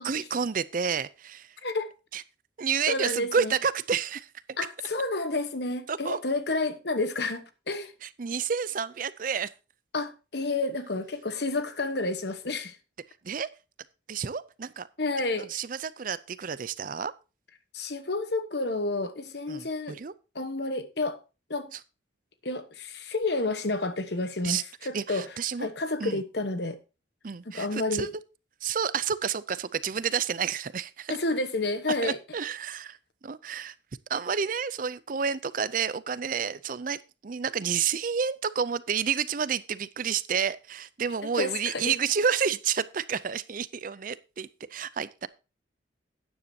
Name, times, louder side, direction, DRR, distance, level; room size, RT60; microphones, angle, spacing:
voice 1, 0.0-1.6 2.1-2.2 2.6-4.3 5.9-6.2 8.0-9.5 13.2-13.5 14.1-14.9 15.4-17.1 19.5-20.1 21.7-21.8 24.4-24.6 24.9-25.7 26.0-26.2 27.2-28.1 28.6-31.2 32.0-33.0 33.2-33.7 34.1-45.3, right 7 dB, 45° right, 0.5 m, -30 dB
voice 2, 2.9-3.5 4.6-7.9 9.9-12.8 15.0-15.5 17.7-20.0 20.3-21.2 21.5-21.7 22.4-25.2 25.6-26.8 27.4-28.1 31.1-32.2 41.4-41.9, left 2 dB, 55° left, 1.1 m, -30 dB
12.0 x 9.6 x 2.8 m
head